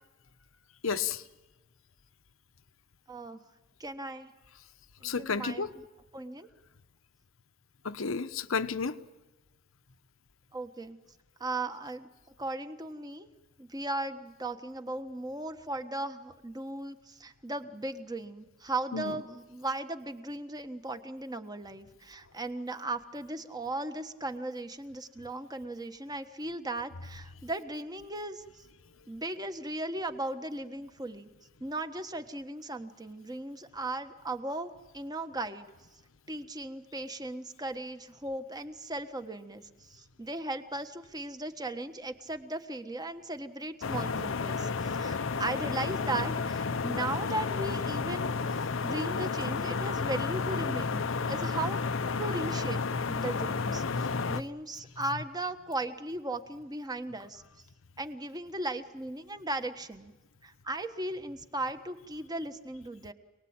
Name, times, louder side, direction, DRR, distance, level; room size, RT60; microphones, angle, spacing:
voice 1, 0.8-1.2 5.0-5.7 7.8-9.0 18.9-19.1 54.1-54.2, left 5 dB, 85° left, 1.1 m, -32 dB
voice 2, 3.1-3.4 3.8-4.3 5.0-5.9 6.1-6.5 10.5-11.0 11.4-12.1 12.4-13.3 13.6-28.6 29.1-31.3 31.6-35.7 36.3-48.3 48.8-52.8 53.1-53.8 54.3-57.4 58.0-60.1 60.4-63.1, right 2 dB, 20° right, 1.4 m, -37 dB
sound 1, 43.8-54.4, left 4 dB, 70° left, 0.7 m, -31 dB
27.5 x 20.0 x 8.9 m
head